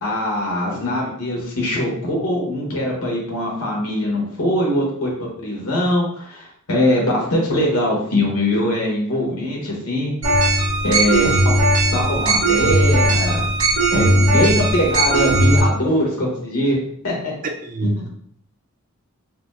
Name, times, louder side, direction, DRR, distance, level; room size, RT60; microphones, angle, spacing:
voice 1, 0.0-10.1 10.8-11.6 11.9-13.4 13.9-16.8 17.0-17.3 17.8-18.0, left 1 dB, 80° left, -2 dB, 1.2 m, -22 dB
sound 1, 10.2-15.6, right 1 dB, 60° right, 1.1 m, -17 dB
voice 2, 17.4-18.1, right 2 dB, 40° right, 5 dB, 0.3 m, -25 dB
4.2 x 2.0 x 2.6 m, 0.63 s
head